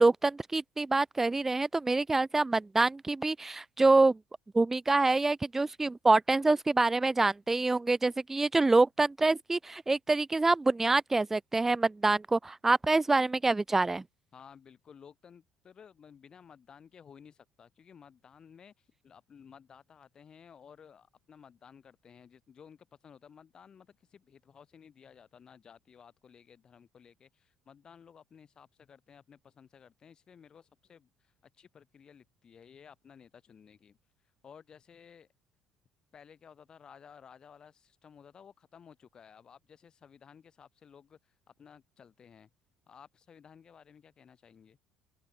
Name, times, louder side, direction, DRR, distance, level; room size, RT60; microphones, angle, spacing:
voice 1, 0.0-4.2 4.5-14.0, right 3 dB, 15° right, 0.4 m, -26 dB
voice 2, 14.3-34.0 34.4-35.3 36.1-41.3 41.6-42.5 42.9-44.8, left 7 dB, 40° left, 2.9 m, -56 dB
hypercardioid pair, 65°, 2 cm